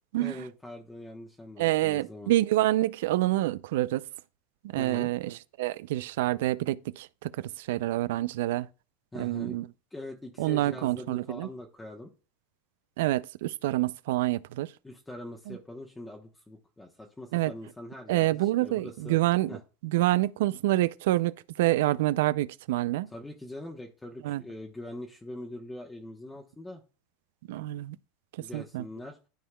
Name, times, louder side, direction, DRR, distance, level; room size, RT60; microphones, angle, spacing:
voice 1, 0.2-2.3 4.8-5.1 9.1-9.6 9.9-12.1 14.8-19.2 19.5-19.6 23.1-26.8 28.4-29.2, left 1 dB, 10° left, 1.0 m, -43 dB
voice 2, 1.6-4.0 4.7-8.7 9.2-9.7 10.4-11.5 13.0-14.7 15.5-15.6 17.3-17.5 18.1-19.5 19.8-23.1 24.2-24.4 27.5-28.0 28.5-28.8, right 16 dB, 75° right, 0.3 m, -27 dB
13.0 x 4.5 x 2.2 m
hypercardioid pair, 105°, 0 cm